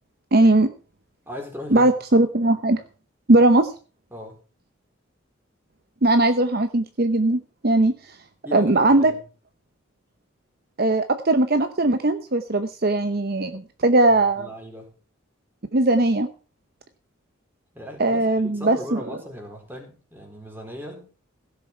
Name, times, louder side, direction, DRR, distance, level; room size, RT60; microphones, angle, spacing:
voice 1, 0.3-0.7 1.7-2.8 3.3-3.7 6.0-7.9 8.5-9.1 10.8-14.5 15.7-16.3 18.0-19.0, right 2 dB, 50° right, 9 dB, 0.9 m, -19 dB
voice 2, 1.3-1.9 4.1-4.4 8.4-9.2 14.4-14.9 17.7-21.1, equal, 10° right, 2 dB, 4.0 m, -37 dB
16.5 x 7.0 x 5.8 m, 0.37 s
head